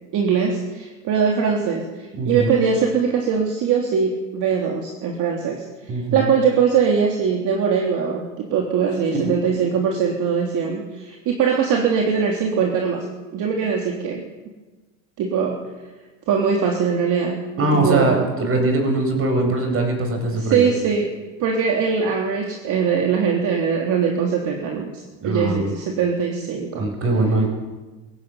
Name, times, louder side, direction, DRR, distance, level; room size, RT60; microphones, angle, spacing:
voice 1, 0.1-13.1 13.3-14.2 15.2-15.7 16.3-18.1 20.3-21.1 21.4-26.9, right 6 dB, 55° right, 1 dB, 3.5 m, -21 dB
voice 2, 2.2-2.5 5.9-6.3 9.1-9.3 17.6-20.7 25.2-25.7 26.8-27.5, right 2 dB, 35° right, 4 dB, 7.3 m, -21 dB
22.0 x 16.0 x 9.6 m, 1.2 s
supercardioid pair, 120°, 37 cm